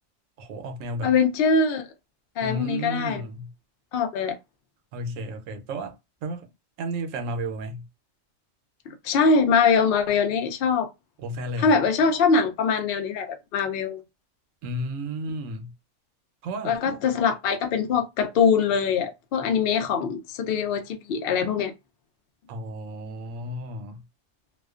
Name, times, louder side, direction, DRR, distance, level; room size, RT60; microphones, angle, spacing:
voice 1, 0.4-1.1 2.4-3.5 4.9-6.5 6.8-7.9 11.2-11.8 14.6-15.7 16.4-17.0 22.5-24.0, right 1 dB, 75° right, 0.9 m, -33 dB
voice 2, 1.0-1.9 2.4-3.2 3.9-4.4 8.9-10.9 11.6-14.0 16.6-21.7, left 5 dB, 60° left, 0.6 m, -23 dB
2.4 x 2.2 x 2.3 m
omnidirectional pair, 1.3 m